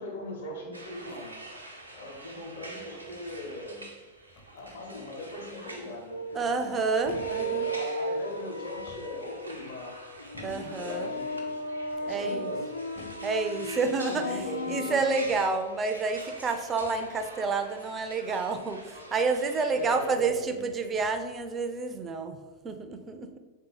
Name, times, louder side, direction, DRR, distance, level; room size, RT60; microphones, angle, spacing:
voice 1, 0.0-1.3 1.9-3.9 4.5-6.8 7.3-10.0 10.4-11.5 12.0-12.7 13.1-13.2 13.9-15.0 19.7-20.6, left 1 dB, 65° left, -1 dB, 1.0 m, -39 dB
sound 1, 0.7-20.1, right 1 dB, 85° right, 0.5 m, -47 dB
sound 2, 4.2-4.8 6.3-6.7 7.0-7.5 8.7-9.3 10.3-10.8 11.6-12.1 13.0-13.3 14.3-14.7 15.2-15.6 16.8-17.1 19.2-19.3 20.2-20.5 20.9-21.3, left 2 dB, 40° left, 0.7 m, -50 dB
sound 3, 6.1-15.5, equal, 85° left, 0.3 m, -35 dB
voice 2, 6.3-7.7 10.4-11.1 12.1-12.5 13.2-22.4 22.6-23.4, right 4 dB, 20° right, 7 dB, 0.4 m, -29 dB
3.6 x 2.7 x 4.0 m, 1.2 s
figure-of-eight pair, 90°, 0 cm